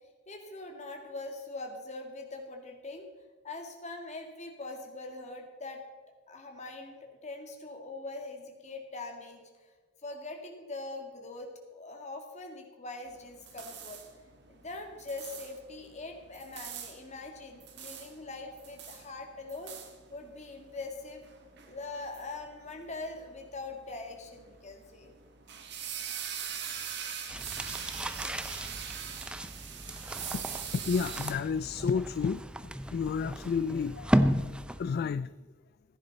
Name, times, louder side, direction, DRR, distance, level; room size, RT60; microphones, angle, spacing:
voice 1, 0.3-3.1 3.4-5.8 6.3-9.7 10.0-14.0 14.5-19.7 20.1-21.2 21.7-25.1, left 2 dB, 40° left, 3 dB, 2.1 m, -42 dB
sound 1, 13.1-31.3, right 8 dB, 60° right, 1.6 m, -43 dB
sound 2, 27.3-35.0, equal, 5° right, 0.5 m, -33 dB
voice 2, 30.7-32.4 32.9-34.1 34.8-35.3, left 5 dB, 55° left, 15 dB, 0.3 m, -30 dB
15.5 x 9.9 x 4.1 m, 1.4 s
head